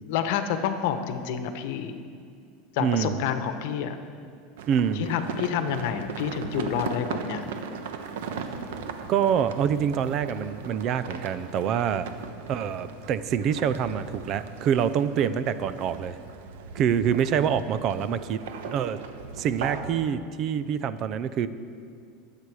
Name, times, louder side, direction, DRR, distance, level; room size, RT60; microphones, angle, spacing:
voice 1, 0.0-2.0 2.7-4.0 4.9-7.4, left 8 dB, 70° left, 8 dB, 1.1 m, -28 dB
voice 2, 2.8-3.2 4.7-5.1 9.1-12.1 12.5-16.2 16.7-18.4 18.7-19.0 19.4-21.5, right 8 dB, 40° right, 14 dB, 0.6 m, -26 dB
sound 1, 4.6-19.9, right 5 dB, 85° right, 1.2 m, -38 dB
22.5 x 8.5 x 4.9 m, 2.3 s
supercardioid pair, 140°, 0 cm